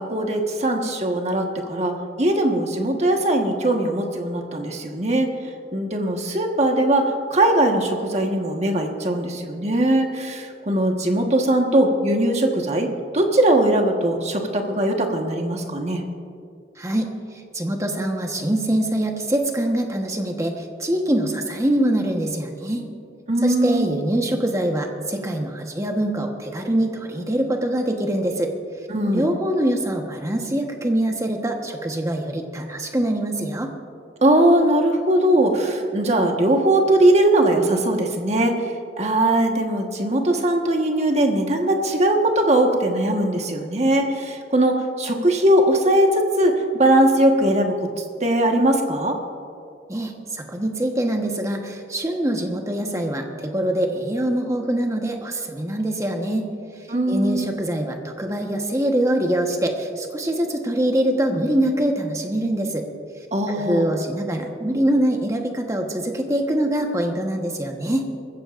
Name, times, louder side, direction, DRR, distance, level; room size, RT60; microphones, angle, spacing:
voice 1, 0.0-5.3 5.7-7.0 7.3-12.9 13.1-16.0 23.3-23.9 28.9-29.3 34.2-38.5 39.0-47.7 48.2-49.2 56.9-57.4 63.3-63.9, right 1 dB, 40° right, 2 dB, 1.4 m, -20 dB
voice 2, 16.8-17.1 17.5-22.8 23.4-28.5 29.1-33.7 49.9-56.5 57.1-62.8 63.5-68.1, right 1 dB, 15° right, 3 dB, 1.2 m, -24 dB
21.5 x 15.0 x 2.6 m, 2.4 s
head